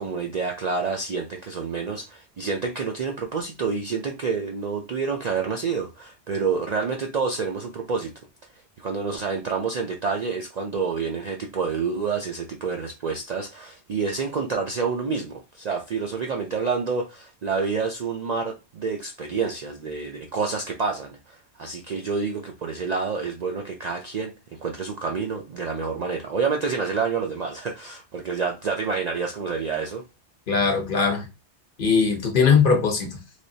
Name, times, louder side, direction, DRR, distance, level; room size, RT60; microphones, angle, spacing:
voice 1, 0.0-8.1 8.8-24.3 24.6-30.0, right 5 dB, 55° right, 0.4 m, -28 dB
voice 2, 30.5-31.3 31.8-33.2, left 5 dB, 50° left, 0.9 m, -20 dB
3.3 x 2.9 x 2.7 m
omnidirectional pair, 1.2 m